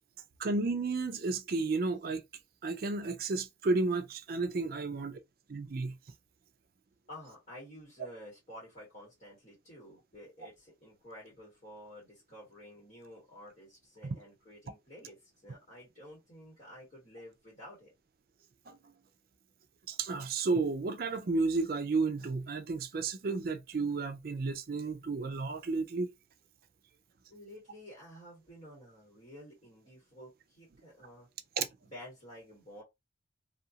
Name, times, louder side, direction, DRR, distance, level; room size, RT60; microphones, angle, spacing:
voice 1, 0.4-2.2 2.6-5.2 5.5-5.9 14.0-14.2 18.7-18.8 19.9-26.1 31.6-31.7, right 3 dB, 50° right, 0.4 m, -32 dB
voice 2, 7.1-17.9 27.3-31.3 31.9-32.8, equal, 35° left, 1.6 m, -51 dB
2.7 x 2.5 x 2.8 m
head